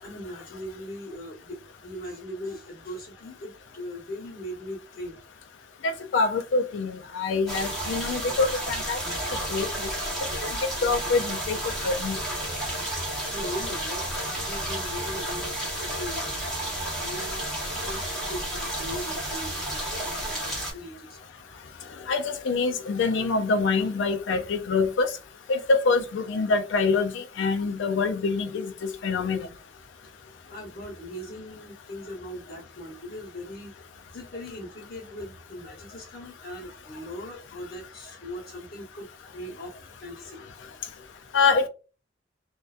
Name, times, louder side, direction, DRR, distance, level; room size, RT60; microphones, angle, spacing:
voice 1, 0.0-5.2 13.3-16.4 17.0-21.2 30.0-33.8 34.1-40.4, equal, 50° left, 0.9 m, -40 dB
voice 2, 5.8-9.0 9.5-9.7 10.8-11.6 11.8-12.2 22.1-25.1 25.5-29.5 41.3-41.7, left 4 dB, 75° left, 0.4 m, -25 dB
Five Minutes of Rain (without reverb), 7.5-20.7, right 1 dB, 5° left, 0.9 m, -31 dB
2.6 x 2.2 x 2.3 m
head